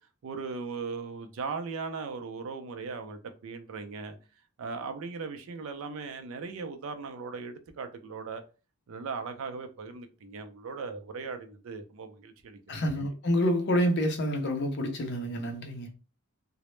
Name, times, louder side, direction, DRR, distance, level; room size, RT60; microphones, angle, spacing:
voice 1, 0.2-4.2 4.6-8.4 8.9-13.1, right 4 dB, 65° right, 0.4 m, -38 dB
voice 2, 12.7-15.9, equal, 50° left, 0.5 m, -28 dB
2.0 x 2.0 x 3.0 m
head